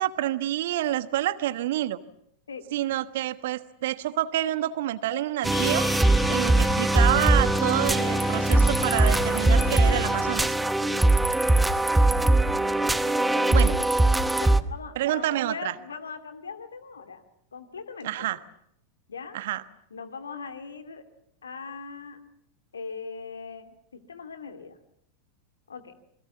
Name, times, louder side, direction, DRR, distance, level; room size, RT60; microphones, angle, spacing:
voice 1, 0.0-2.0 2.7-5.9 6.3-10.5 13.5-13.8 15.0-15.7 18.0-18.4 19.3-19.6, right 13 dB, 55° right, 14 dB, 1.2 m, -28 dB
sound 1, 5.4-14.6, right 2 dB, 5° right, 1.1 m, -21 dB
sound 2, 5.5-10.5, left 13 dB, 50° left, 1.6 m, -39 dB
voice 2, 13.0-17.2 17.5-18.3 19.1-19.4 19.9-21.0 21.4-22.2 22.7-24.8 25.7-25.9, left 5 dB, 75° left, 9 dB, 2.4 m, -40 dB
28.0 x 22.0 x 7.3 m, 0.71 s
figure-of-eight pair, 90°, 0 cm